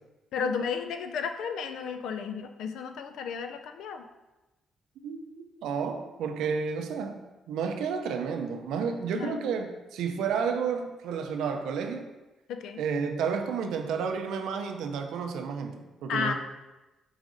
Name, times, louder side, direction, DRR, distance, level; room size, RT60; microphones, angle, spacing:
voice 1, 0.3-4.0 9.1-9.5 12.5-12.8 16.1-16.3, left 6 dB, 80° left, 7 dB, 0.3 m, -33 dB
voice 2, 5.0-7.2 7.5-12.1 12.8-16.3, right 6 dB, 85° right, 5 dB, 0.5 m, -31 dB
4.9 x 3.9 x 2.6 m, 1.1 s
cardioid pair, 90°, 0 cm